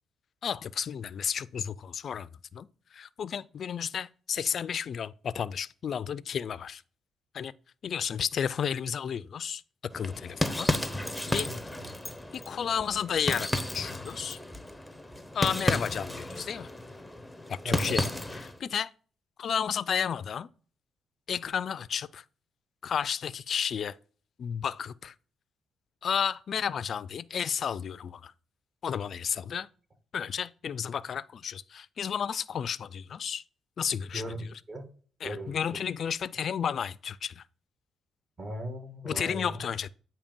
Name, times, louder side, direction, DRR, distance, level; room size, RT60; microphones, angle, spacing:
voice 1, 0.4-6.8 7.3-7.5 7.8-9.6 9.9-10.7 11.3-11.5 12.3-14.4 15.3-16.7 17.5-18.1 18.4-18.9 19.4-20.5 21.3-22.2 22.8-24.0 24.4-25.1 26.0-28.3 28.8-29.7 30.1-33.4 33.8-34.5 35.2-37.4 39.0-39.9, left 7 dB, 55° left, 0.3 m, -32 dB
sound 1, 9.9-18.6, left 1 dB, 5° left, 0.6 m, -33 dB
voice 2, 11.2-11.9 17.6-18.0 34.1-34.9 35.2-35.8 38.4-39.7, right 1 dB, 35° right, 1.7 m, -38 dB
8.5 x 2.8 x 5.2 m
cardioid pair, 90°, 0 cm